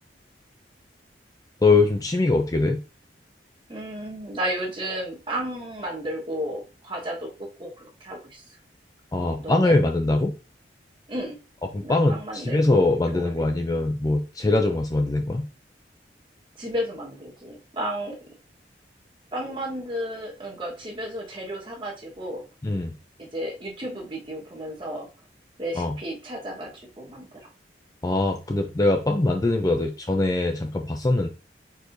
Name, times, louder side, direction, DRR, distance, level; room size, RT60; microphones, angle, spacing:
voice 1, 1.6-2.8 9.1-10.3 11.7-15.5 22.6-22.9 25.8-26.0 28.0-31.3, left 2 dB, 20° left, 4 dB, 0.4 m, -22 dB
voice 2, 3.7-8.6 9.4-9.8 11.1-11.4 11.8-12.7 13.1-13.3 16.6-18.2 19.3-22.4 23.2-25.1 25.6-27.5, equal, 25° right, -1 dB, 1.4 m, -33 dB
4.6 x 4.4 x 2.6 m, 0.33 s
head